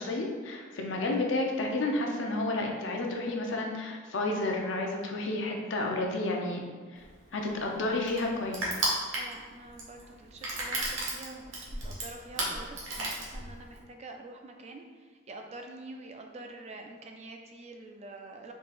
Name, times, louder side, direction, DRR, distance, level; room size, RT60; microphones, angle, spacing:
voice 1, 0.0-6.7 6.9-7.0 7.3-8.8, left 2 dB, 60° left, 1 dB, 0.6 m, -31 dB
Crushing, 7.0-13.8, right 1 dB, 70° right, 1.0 m, -34 dB
voice 2, 9.1-18.5, right 2 dB, 30° right, 3 dB, 0.3 m, -46 dB
3.7 x 2.7 x 4.1 m, 1.5 s
head